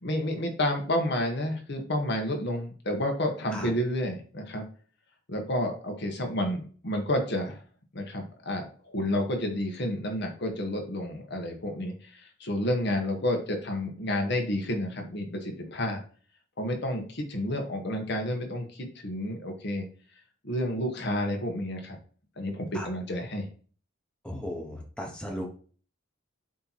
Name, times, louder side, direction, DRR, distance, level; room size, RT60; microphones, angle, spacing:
voice 1, 0.0-4.6 5.3-7.6 7.9-16.0 16.6-19.9 20.4-22.0 22.4-23.5, left 1 dB, 60° left, 2 dB, 1.4 m, -30 dB
voice 2, 24.2-25.5, equal, 5° left, 0 dB, 1.1 m, -36 dB
8.1 x 3.1 x 4.2 m, 0.42 s
head